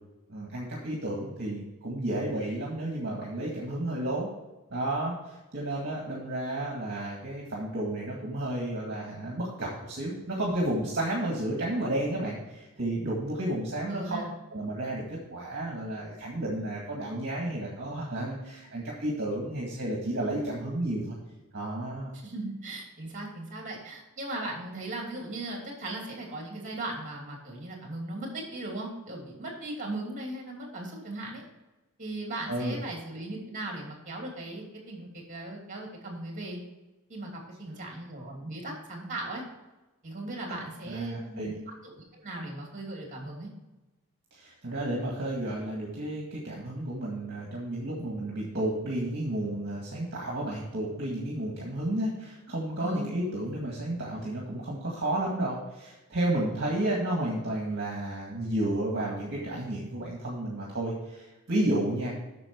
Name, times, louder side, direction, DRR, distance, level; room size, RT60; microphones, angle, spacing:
voice 1, 0.3-4.3 4.7-14.2 14.5-21.2 21.5-22.1 32.5-32.8 40.9-41.6 44.3-62.1, right 1 dB, 50° right, -3 dB, 2.0 m, -32 dB
voice 2, 13.9-14.3 22.2-31.4 32.0-36.6 37.1-37.3 37.6-39.4 40.0-43.5 52.8-53.1, right 2 dB, 35° right, 0 dB, 2.9 m, -38 dB
8.8 x 6.3 x 4.6 m, 1.1 s
head